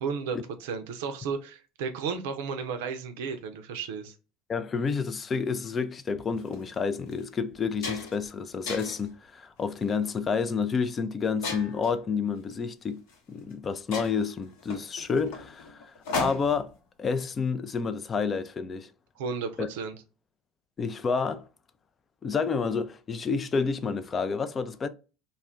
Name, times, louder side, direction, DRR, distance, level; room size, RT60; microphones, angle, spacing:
voice 1, 0.0-4.2 19.2-20.0, right 5 dB, 75° right, 0.4 m, -33 dB
voice 2, 4.5-13.0 13.3-16.7 17.0-18.9 19.6-19.7 20.8-21.4 22.2-24.9, left 5 dB, 30° left, 0.3 m, -29 dB
sound 1, 6.4-6.5 7.1-7.2 7.5-8.3 8.7-9.1 9.8-10.1 11.4-12.0 13.1-13.2 13.5-13.6 13.9-16.7, left 3 dB, 70° left, 0.9 m, -36 dB
2.3 x 2.1 x 3.4 m
hypercardioid pair, 75°, 0 cm